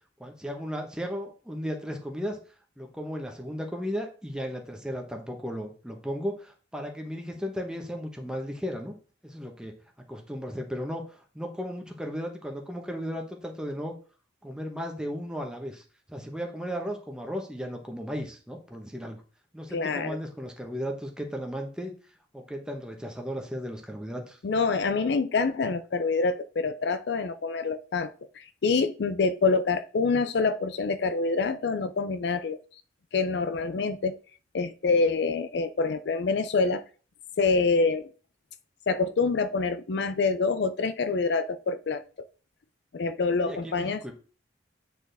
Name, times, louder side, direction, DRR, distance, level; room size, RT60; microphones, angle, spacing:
voice 1, 0.2-2.4 2.8-8.9 9.2-9.7 10.1-13.9 14.4-19.2 19.5-21.9 22.3-24.4 43.5-44.1, equal, 5° right, 2 dB, 1.0 m, -35 dB
voice 2, 19.7-20.2 24.4-32.6 33.1-34.2 34.5-36.8 37.4-38.1 38.9-42.0 42.9-44.1, left 4 dB, 60° left, 12 dB, 0.4 m, -26 dB
8.2 x 4.5 x 3.4 m, 0.38 s
head